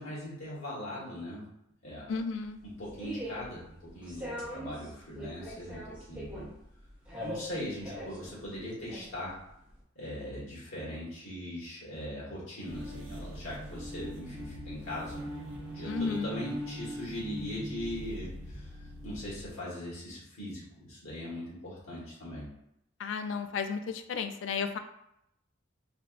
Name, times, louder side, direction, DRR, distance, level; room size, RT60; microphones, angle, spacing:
voice 1, 0.0-1.4 1.8-2.1 2.8-6.5 7.2-9.3 9.9-15.3 15.7-18.7 19.0-22.5, left 1 dB, 80° left, -7 dB, 1.5 m, -40 dB
voice 2, 2.1-2.6 15.8-16.3 23.0-24.8, left 5 dB, 65° left, 8 dB, 0.3 m, -33 dB
sound 1, 2.1-9.8, equal, 5° right, 0.9 m, -42 dB
sound 2, 12.6-19.5, equal, 65° right, 0.8 m, -41 dB
3.3 x 2.9 x 2.4 m, 0.78 s
head